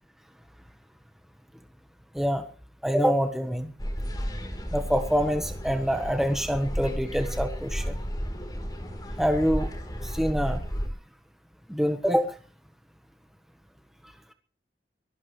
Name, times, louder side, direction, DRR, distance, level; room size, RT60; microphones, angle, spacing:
voice 1, 2.1-2.5 2.8-3.7 4.7-7.9 9.2-9.7 10.0-10.7 11.7-12.4, equal, ahead, 6 dB, 1.2 m, -25 dB
sound 1, 3.8-10.9, equal, 25° left, 3.9 m, -33 dB
21.5 x 18.0 x 3.3 m, 0.40 s
head